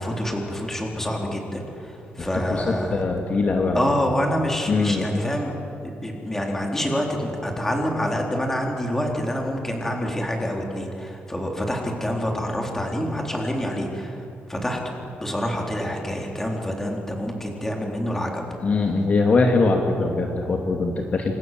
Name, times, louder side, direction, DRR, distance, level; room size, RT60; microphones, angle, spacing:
voice 1, 0.0-3.0 3.7-14.2 14.5-18.4, equal, 10° left, 0 dB, 4.0 m, -27 dB
voice 2, 2.2-3.8 4.7-5.1 18.6-21.3, left 3 dB, 35° left, 2 dB, 2.4 m, -22 dB
28.5 x 27.0 x 7.7 m, 2.8 s
cardioid pair, 150°, 4 cm